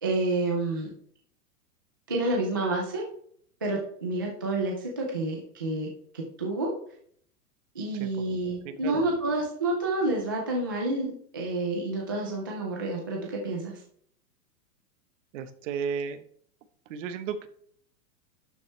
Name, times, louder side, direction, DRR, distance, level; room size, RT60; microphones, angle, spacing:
voice 1, 0.0-0.9 2.1-3.0 3.6-5.9 6.1-6.7 7.8-13.8, right 2 dB, 15° right, -1 dB, 0.3 m, -29 dB
voice 2, 8.6-9.1 15.3-16.2 16.9-17.5, right 6 dB, 50° right, 10 dB, 1.2 m, -33 dB
11.5 x 7.4 x 3.3 m, 0.63 s
supercardioid pair, 160°, 48 cm